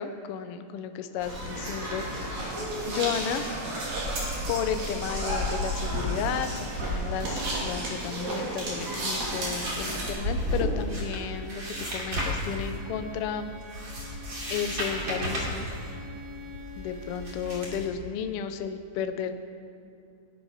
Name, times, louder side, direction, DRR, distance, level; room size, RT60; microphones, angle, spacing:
voice 1, 0.0-3.4 4.5-11.6 11.9-13.5 14.5-15.7 16.8-19.4, left 8 dB, 80° left, 8 dB, 1.3 m, -33 dB
sound 1, 1.2-10.1, right 1 dB, 60° right, 4.4 m, -32 dB
sound 2, 9.5-17.9, equal, 40° right, 3.1 m, -34 dB
Bowed string instrument, 10.7-17.6, left 1 dB, 80° right, 6.5 m, -47 dB
19.0 x 10.5 x 5.7 m, 2.5 s
omnidirectional pair, 3.5 m